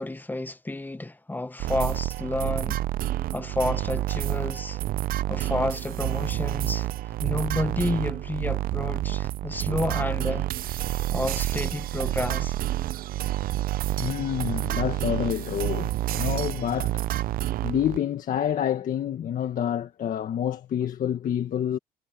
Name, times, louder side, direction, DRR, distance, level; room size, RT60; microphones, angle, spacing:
voice 1, 0.0-2.8 3.3-4.8 5.3-6.9 7.2-10.5 11.1-12.5, left 2 dB, 10° left, 1.2 m, -30 dB
sound 1, 1.6-18.0, right 14 dB, 60° right, 0.5 m, -29 dB
voice 2, 14.0-17.0 17.6-21.8, left 10 dB, 55° left, 1.6 m, -28 dB
cardioid pair, 110°, 17 cm